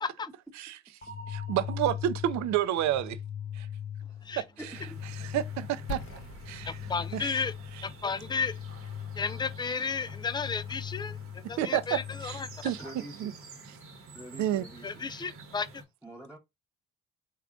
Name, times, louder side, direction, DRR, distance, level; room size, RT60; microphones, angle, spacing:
sound 1, 1.0-13.0, left 9 dB, 35° left, 1.0 m, -40 dB
voice 1, 1.3-3.2 3.5-3.7 4.4-4.5 5.2-6.0 6.5-6.8 7.1-7.3 11.6-12.8 13.2-13.3 14.4-14.6, right 11 dB, 65° right, 0.5 m, -30 dB
voice 2, 4.6-5.0 12.8-13.3 14.1-14.9 16.0-16.4, right 1 dB, 5° right, 1.0 m, -45 dB
sound 2, 4.7-15.8, right 3 dB, 45° right, 1.1 m, -50 dB
sound 3, 5.9-11.6, left 3 dB, 60° left, 0.8 m, -46 dB
voice 3, 6.7-7.5 7.8-8.6 9.2-12.5 14.8-15.8, left 5 dB, 15° left, 0.4 m, -33 dB
3.5 x 2.3 x 3.5 m
hypercardioid pair, 60°, 31 cm